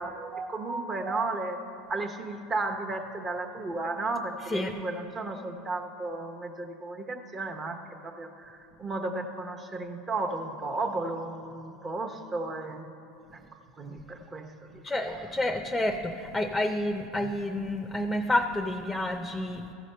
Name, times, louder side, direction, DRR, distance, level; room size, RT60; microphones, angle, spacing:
voice 1, 0.0-1.6 1.9-12.9 13.3-13.4 13.8-14.8 15.1-15.2, right 2 dB, 30° right, 5 dB, 0.9 m, -34 dB
voice 2, 14.8-19.6, left 1 dB, 10° left, 6 dB, 0.5 m, -29 dB
14.0 x 5.0 x 5.5 m, 2.7 s
hypercardioid pair, 90°, 0 cm